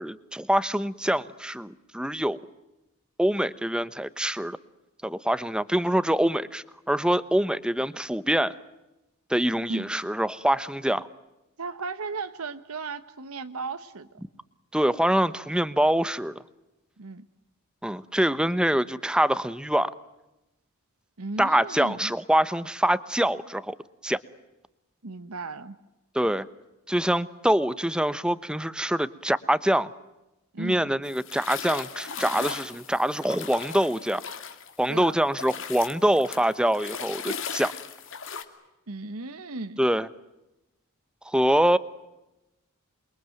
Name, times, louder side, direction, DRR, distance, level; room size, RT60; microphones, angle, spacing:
voice 1, 0.0-2.4 3.2-4.6 5.0-8.6 9.3-11.1 14.7-16.3 17.8-19.9 21.4-23.8 24.0-24.2 26.1-26.4 26.9-29.9 30.6-34.2 34.8-37.7 39.8-40.1 41.2-41.8, right 1 dB, 5° right, 15 dB, 0.9 m, -25 dB
voice 2, 11.6-14.1 17.0-17.2 21.2-22.1 25.0-25.8 30.5-30.8 34.9-35.2 38.9-39.8, right 3 dB, 85° right, 10 dB, 1.2 m, -35 dB
sound 1, 31.1-35.0 35.3-38.4, left 6 dB, 60° left, 2.6 m, -37 dB
28.0 x 23.0 x 9.1 m, 0.96 s
head